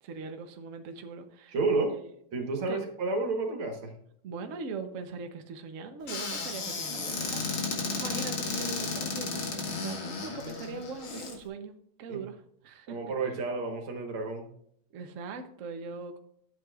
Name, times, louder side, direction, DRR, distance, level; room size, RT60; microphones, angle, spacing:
voice 1, 0.0-1.5 1.9-2.0 2.7-2.8 4.2-7.5 7.9-11.7 12.0-13.0 14.9-16.2, right 4 dB, 55° right, 6 dB, 0.9 m, -41 dB
voice 2, 1.5-2.0 2.3-3.9 12.1-12.2 12.9-14.4, right 3 dB, 80° right, 3 dB, 2.3 m, -30 dB
Squeak / Cupboard open or close, 6.1-11.3, left 4 dB, 75° left, 2.6 m, -33 dB
12.0 x 7.6 x 2.4 m, 0.70 s
omnidirectional pair, 2.3 m